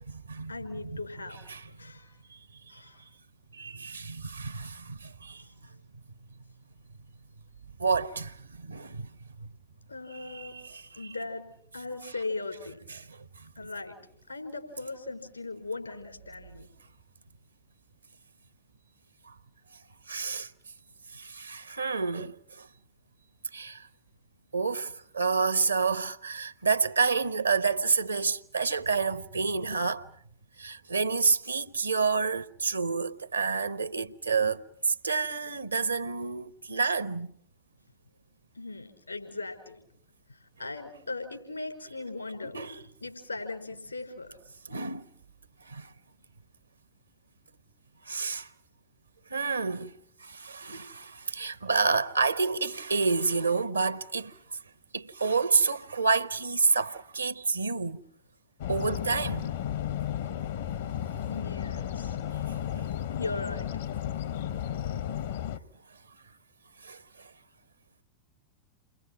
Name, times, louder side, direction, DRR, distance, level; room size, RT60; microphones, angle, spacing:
voice 1, 0.5-2.1 2.7-3.0 5.4-5.5 9.9-10.6 10.9-11.4 11.7-12.8 13.5-13.9 14.3-16.7 38.5-39.8 40.3-42.6 43.0-44.4 61.3-62.2 63.1-63.7, left 3 dB, 85° left, 5.2 m, -38 dB
voice 2, 3.5-5.4 7.8-9.1 9.4-9.5 10.2-11.0 12.9-13.2 19.3-19.4 20.1-20.5 21.1-22.7 23.5-23.9 24.5-30.1 30.6-37.3 42.4-42.8 44.7-45.0 45.7-45.9 48.1-48.5 49.3-49.9 50.2-54.3 54.9-58.0 58.7-59.5 66.8-67.0, right 4 dB, 80° right, 1.0 m, -29 dB
sound 1, 58.6-65.6, left 10 dB, 60° left, 0.9 m, -33 dB
30.0 x 23.0 x 6.0 m
figure-of-eight pair, 90°, 0 cm